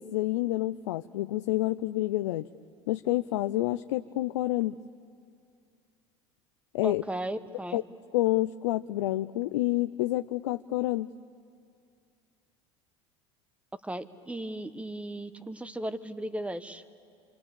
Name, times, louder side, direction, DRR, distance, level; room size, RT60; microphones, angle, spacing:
voice 1, 0.0-2.5 2.9-4.8 6.7-7.0 7.7-7.8 8.1-11.1, left 17 dB, 80° left, 10 dB, 0.6 m, -28 dB
voice 2, 6.8-7.8 13.8-16.8, right 1 dB, 10° right, 12 dB, 1.2 m, -36 dB
27.5 x 25.5 x 7.2 m, 2.3 s
hypercardioid pair, 80°, 15 cm